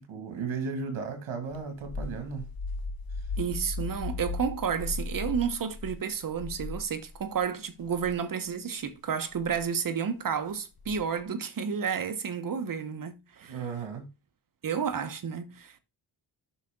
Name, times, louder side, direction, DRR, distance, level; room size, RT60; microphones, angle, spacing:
voice 1, 0.1-2.5 13.5-14.1, right 5 dB, 85° right, 2.4 m, -35 dB
sound 1, 1.5-7.4 7.8-8.2 9.3-9.6 10.8-11.2, left 3 dB, 50° left, 1.2 m, -37 dB
voice 2, 3.4-13.6 14.6-15.8, right 7 dB, 45° right, 1.2 m, -31 dB
8.2 x 5.8 x 3.8 m
cardioid pair, 110°, 47 cm